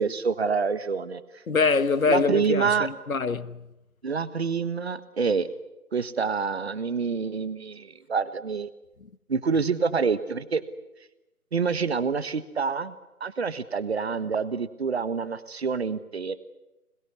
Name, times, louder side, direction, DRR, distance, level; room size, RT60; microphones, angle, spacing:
voice 1, 0.0-1.4 2.1-2.9 4.0-5.5 5.9-8.7 9.3-10.6 11.5-12.9 13.2-16.4, right 5 dB, 45° right, 1.6 m, -27 dB
voice 2, 1.5-3.6, left 4 dB, 65° left, 1.5 m, -24 dB
26.5 x 21.5 x 9.6 m
figure-of-eight pair, 155°, 45 cm